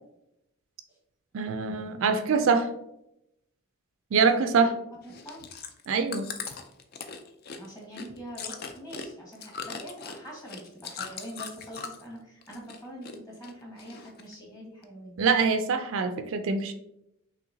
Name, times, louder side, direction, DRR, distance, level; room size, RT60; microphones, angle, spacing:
voice 1, 1.3-2.7 4.1-4.7 5.9-6.3 15.2-16.7, right 5 dB, 60° right, 8 dB, 0.4 m, -24 dB
voice 2, 4.3-4.7 5.0-5.4 7.6-15.2, equal, 15° left, -2 dB, 1.3 m, -44 dB
Chewing mastication, 5.0-12.1 12.4-13.2 13.4-14.3 14.8-14.9, left 6 dB, 45° left, 0.4 m, -40 dB
5.6 x 3.2 x 2.7 m, 0.82 s
head